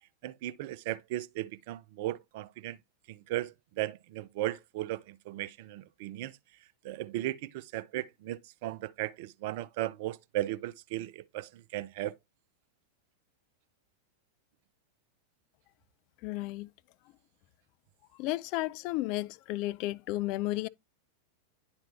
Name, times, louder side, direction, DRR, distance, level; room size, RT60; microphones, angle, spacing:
voice 1, 0.2-2.8 3.1-6.4 6.8-12.1, right 15 dB, 50° right, 0.4 m, -36 dB
voice 2, 16.2-16.7 18.2-20.7, left 18 dB, 45° left, 0.3 m, -33 dB
10.5 x 4.4 x 2.8 m
figure-of-eight pair, 90°, 0 cm